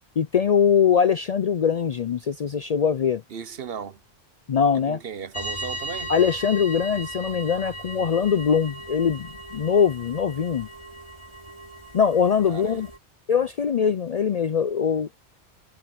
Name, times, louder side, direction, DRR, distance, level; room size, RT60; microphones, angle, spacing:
voice 1, 0.2-3.2 4.5-5.0 6.1-10.7 11.9-12.9 13.3-15.1, left 7 dB, 55° left, 0.4 m, -22 dB
voice 2, 3.3-4.0 4.7-6.1 12.5-12.9, right 7 dB, 65° right, 1.1 m, -36 dB
sound 1, 5.3-13.0, right 1 dB, 25° left, 2.6 m, -37 dB
omnidirectional pair, 1.1 m